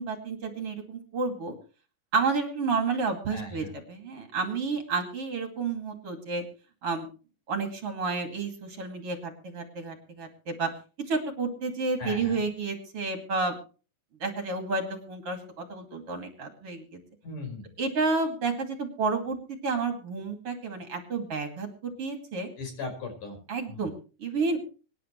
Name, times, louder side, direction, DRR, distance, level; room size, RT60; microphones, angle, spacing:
voice 1, 0.0-1.5 2.1-6.4 6.8-7.1 7.5-10.7 11.1-13.6 14.2-16.8 17.8-22.5 23.5-23.9 24.2-24.6, right 4 dB, 45° right, 5 dB, 3.2 m, -30 dB
voice 2, 3.3-3.7 12.0-12.4 17.2-17.7 22.6-23.4 23.7-23.9, left 3 dB, 70° left, 4 dB, 6.8 m, -38 dB
25.0 x 11.0 x 3.1 m, 0.36 s
omnidirectional pair, 3.7 m